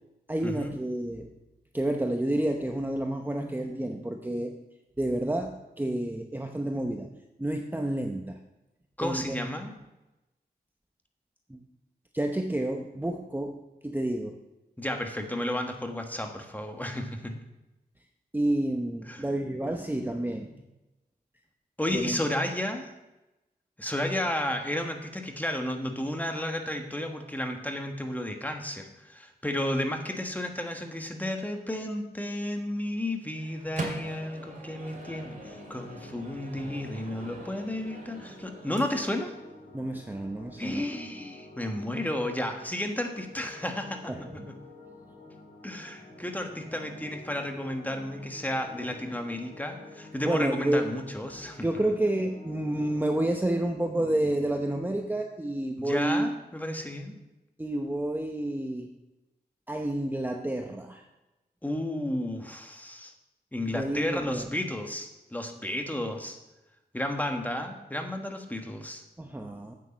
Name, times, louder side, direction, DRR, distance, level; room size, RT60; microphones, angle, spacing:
voice 1, 0.3-1.3 1.7-4.5 5.0-7.1 7.4-8.4 9.0-9.5 11.5-11.6 12.1-13.6 13.8-14.4 18.3-20.7 21.9-22.2 39.7-40.9 44.1-44.5 50.2-50.9 51.6-56.3 57.6-58.9 59.7-61.1 63.7-64.4 69.2-69.7, right 1 dB, 10° right, 3 dB, 0.8 m, -29 dB
voice 2, 9.0-9.7 14.8-17.4 19.1-19.2 21.8-22.9 23.8-39.4 40.6-44.1 44.5-44.6 45.6-51.6 55.8-57.2 61.6-63.1 63.5-66.4 66.9-69.0, left 1 dB, 10° left, 4 dB, 1.3 m, -32 dB
Microwave oven, 33.3-39.3, right 2 dB, 50° right, 2.3 m, -43 dB
sound 1, 34.1-53.6, left 2 dB, 70° left, 2.2 m, -49 dB
8.3 x 8.3 x 5.2 m, 1.0 s
cardioid pair, 70°, 17 cm